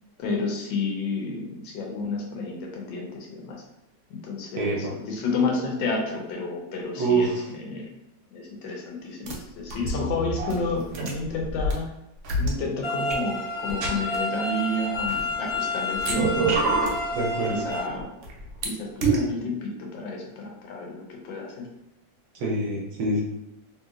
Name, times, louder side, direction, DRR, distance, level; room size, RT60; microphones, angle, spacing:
voice 1, 0.2-3.6 4.1-7.3 7.7-7.9 8.3-11.9 12.4-17.1 17.5-18.1 18.6-21.7, left 3 dB, 85° left, 0 dB, 1.4 m, -31 dB
voice 2, 4.6-4.9 7.0-7.4 17.1-17.6 22.4-23.2, right 2 dB, 70° right, -1 dB, 1.0 m, -25 dB
sound 1, 9.3-9.4 9.7-11.7 12.2-12.5 13.1-13.2 13.7-14.2 14.9-15.5 15.9-17.0 17.7-18.6 19.0-19.2, right 3 dB, 90° right, 0.6 m, -27 dB
sound 2, 12.8-17.8, left 2 dB, 50° left, 1.0 m, -30 dB
3.0 x 2.7 x 2.4 m, 0.88 s
omnidirectional pair, 2.0 m